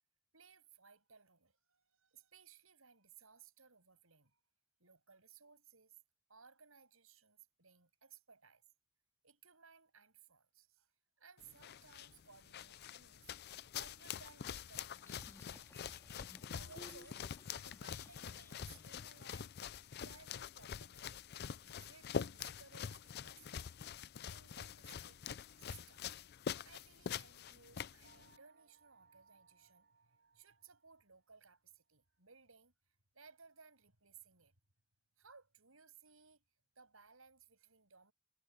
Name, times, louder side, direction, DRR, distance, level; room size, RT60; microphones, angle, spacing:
voice 1, 0.3-4.3 4.8-6.0 6.3-8.6 9.2-10.9 11.2-13.3 13.7-15.5 16.4-17.2 17.6-19.5 20.0-21.3 21.6-25.2 25.6-26.1 26.6-34.5 35.2-36.4 36.8-38.1, right 6 dB, 80° right, 7.7 m, -62 dB
sound 1, 11.4-28.4, left 7 dB, 50° left, 0.4 m, -46 dB
sound 2, 14.9-18.9, left 1 dB, 15° left, 2.1 m, -60 dB
sound 3, 28.0-31.4, right 4 dB, 50° right, 7.6 m, -69 dB
head